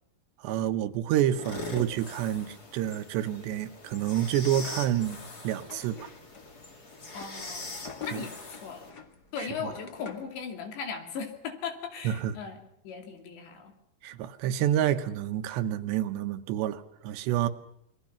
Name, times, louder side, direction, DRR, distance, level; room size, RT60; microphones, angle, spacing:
voice 1, 0.4-6.1 8.1-8.2 12.0-12.4 14.0-17.5, right 11 dB, 85° right, 3.3 m, -28 dB
sound 1, 1.3-8.9, left 2 dB, 25° left, 2.5 m, -42 dB
sound 2, 4.5-10.4, left 7 dB, 50° left, 1.2 m, -47 dB
voice 2, 7.1-7.7 8.0-8.9 9.3-13.7, left 6 dB, 85° left, 5.0 m, -38 dB
28.0 x 22.5 x 5.9 m
omnidirectional pair, 4.9 m